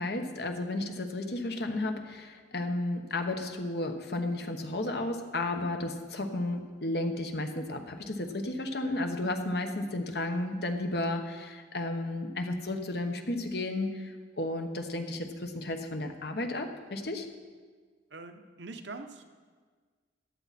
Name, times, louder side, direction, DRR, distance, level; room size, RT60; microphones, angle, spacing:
voice 1, 0.0-17.3, left 2 dB, 65° left, 5 dB, 1.2 m, -33 dB
voice 2, 18.1-19.3, right 3 dB, 80° right, 7 dB, 0.9 m, -43 dB
14.5 x 10.5 x 4.3 m, 1.5 s
head